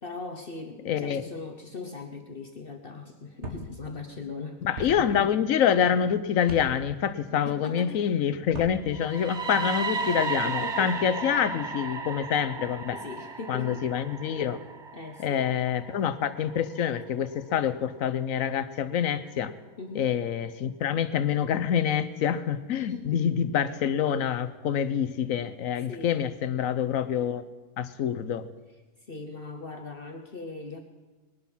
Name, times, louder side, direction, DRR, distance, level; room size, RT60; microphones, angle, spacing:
voice 1, 0.0-5.4 7.4-8.0 10.4-11.3 12.9-13.9 14.9-15.5 19.8-20.1 22.7-23.4 25.9-26.2 29.1-30.8, left 4 dB, 45° left, 4 dB, 1.2 m, -40 dB
voice 2, 0.9-1.2 4.6-13.0 13.5-14.6 15.2-19.5 19.9-27.4 27.8-28.4, left 8 dB, 85° left, 12 dB, 1.2 m, -26 dB
sound 1, 3.4-3.6 4.8-4.9 6.4-6.7 8.4-8.7, right 2 dB, 55° right, 2.2 m, -37 dB
sound 2, 8.9-16.8, right 4 dB, 35° right, 0.4 m, -34 dB
20.5 x 11.5 x 5.6 m, 1.3 s
omnidirectional pair, 1.4 m